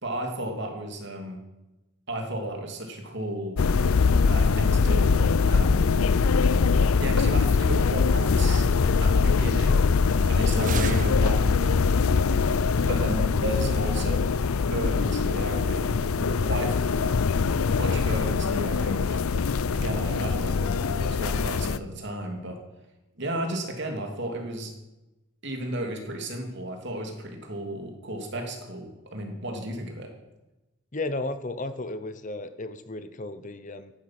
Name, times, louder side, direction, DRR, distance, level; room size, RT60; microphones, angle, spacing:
voice 1, 0.0-1.4 2.1-3.6 4.2-5.9 6.7-8.7 9.0-9.9 10.3-12.0 12.9-14.3 14.7-17.2 17.6-19.2 19.7-22.6 23.2-24.7 25.4-30.1, right 1 dB, 55° right, 3 dB, 2.9 m, -34 dB
sound 1, 3.6-21.8, left 5 dB, 85° left, 0.5 m, -23 dB
sound 2, 10.0-11.8, right 4 dB, 40° right, 0.6 m, -34 dB
voice 2, 30.9-33.9, left 2 dB, 35° left, 11 dB, 0.9 m, -34 dB
15.0 x 11.5 x 6.1 m, 1.0 s
head